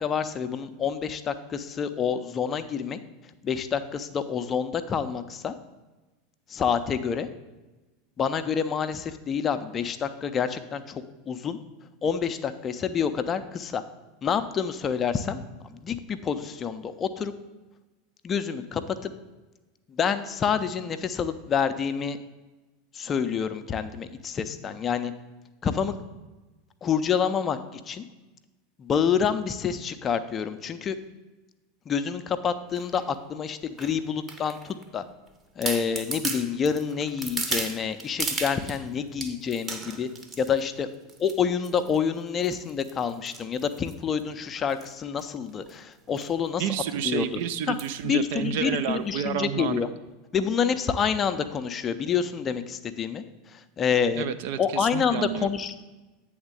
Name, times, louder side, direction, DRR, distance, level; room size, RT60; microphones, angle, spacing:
voice 1, 0.0-3.0 3.4-5.5 6.5-7.3 8.2-11.6 12.0-13.8 14.2-17.3 18.2-19.1 19.9-22.2 22.9-25.1 25.6-26.0 26.8-28.1 28.8-31.0 31.9-35.0 35.6-40.1 40.4-40.9 41.2-46.7 47.0-47.3 47.7-47.8 48.0-49.9 50.3-54.3 54.6-55.7, left 7 dB, 30° left, 10 dB, 0.5 m, -28 dB
sound 1, 32.8-33.0 33.8-34.8 35.3-35.4 35.6-38.8 39.2-40.6 41.1-41.4 41.6-42.0 42.4-44.2 44.7-44.9 45.2-45.3 45.5-45.7 46.2-46.3 46.7-46.8 47.8-48.0 48.6-48.7, right 3 dB, 25° right, 0.8 m, -35 dB
voice 2, 46.6-49.8 54.2-55.5, right 9 dB, 55° right, 12 dB, 0.4 m, -30 dB
8.7 x 3.6 x 6.5 m, 1.2 s
figure-of-eight pair, 80°, 0 cm